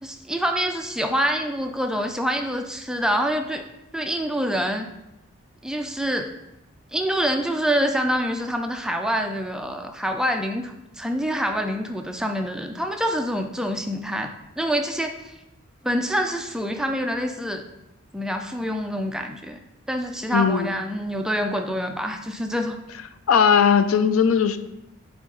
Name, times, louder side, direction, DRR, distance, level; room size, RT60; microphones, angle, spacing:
voice 1, 0.0-3.6 3.9-4.9 5.6-6.3 6.9-15.3 15.8-17.6 18.1-19.6 19.9-22.8, equal, 5° right, 5 dB, 0.3 m, -26 dB
voice 2, 20.3-20.7 23.3-24.6, left 7 dB, 80° left, 11 dB, 0.4 m, -18 dB
9.3 x 3.5 x 3.8 m, 0.92 s
head